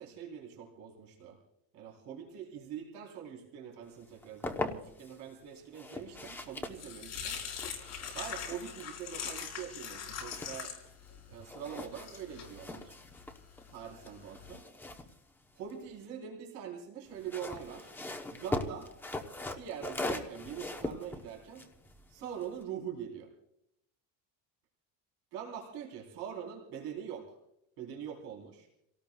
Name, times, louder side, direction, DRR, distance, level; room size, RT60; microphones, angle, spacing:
voice 1, 0.0-1.4 1.7-7.4 8.1-10.7 11.3-12.9 13.7-14.6 15.5-17.9 18.3-18.9 19.6-21.6 22.1-23.3 25.3-27.4 27.8-28.7, right 8 dB, 80° right, -1 dB, 3.9 m, -43 dB
sound 1, 4.0-5.2 5.7-11.1 11.4-16.1 17.1-22.6, left 2 dB, 5° left, 0.8 m, -41 dB
sound 2, 6.2-14.5, left 7 dB, 40° left, 4.5 m, -43 dB
29.5 x 18.0 x 2.3 m, 0.79 s
cardioid pair, 165°, 39 cm